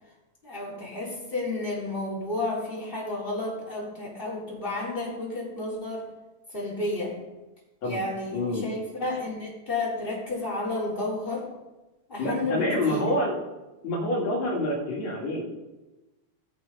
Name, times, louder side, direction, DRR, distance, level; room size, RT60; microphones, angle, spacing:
voice 1, 0.4-6.1 6.5-7.1 7.8-11.5 12.1-13.1, left 2 dB, 15° left, -6 dB, 3.8 m, -31 dB
voice 2, 8.3-8.7 12.2-13.4 13.8-15.4, left 1 dB, 50° left, -2 dB, 3.4 m, -27 dB
17.0 x 6.8 x 5.7 m, 1.1 s
omnidirectional pair, 4.5 m